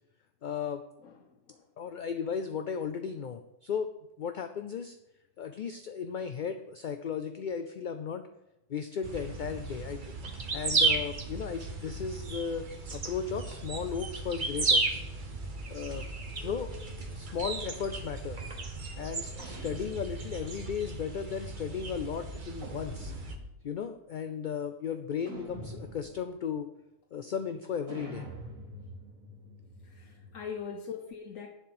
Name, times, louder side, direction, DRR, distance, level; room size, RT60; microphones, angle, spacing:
voice 1, 0.4-0.8 1.8-3.9 4.2-4.9 5.4-8.3 8.7-10.2 10.5-12.7 12.9-15.0 15.7-16.1 16.4-16.7 17.1-18.4 19.0-23.1 23.6-26.7 27.1-28.2, left 7 dB, 55° left, 8 dB, 0.5 m, -35 dB
voice 2, 1.0-1.7 29.8-31.5, left 6 dB, 85° left, 1 dB, 1.3 m, -42 dB
sound 1, 9.0-23.4, right 3 dB, 40° right, 1.2 m, -34 dB
sound 2, 19.4-20.7 22.6-23.7 25.3-26.3 27.9-30.6, right 1 dB, 90° right, 3.4 m, -45 dB
10.5 x 4.4 x 7.8 m, 0.88 s
omnidirectional pair, 1.3 m